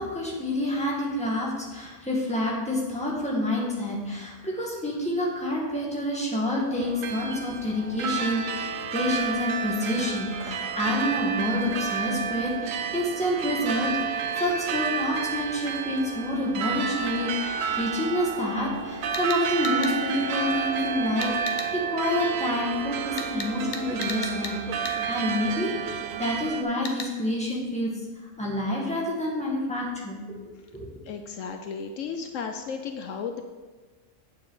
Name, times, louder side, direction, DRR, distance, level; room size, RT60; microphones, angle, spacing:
voice 1, 0.0-28.0 28.4-30.4 30.7-30.9, left 1 dB, 5° left, -4 dB, 1.8 m, -28 dB
sound 1, 6.8-26.6, right 6 dB, 85° right, 1.1 m, -31 dB
sound 2, 18.7-18.8 19.1-19.9 21.2-21.7 23.2-24.6 24.8-25.0 26.8-27.1, left 3 dB, 40° left, 0.9 m, -35 dB
voice 2, 31.1-33.4, left 6 dB, 75° left, 5 dB, 1.0 m, -34 dB
9.0 x 7.5 x 4.0 m, 1.3 s
omnidirectional pair, 1.4 m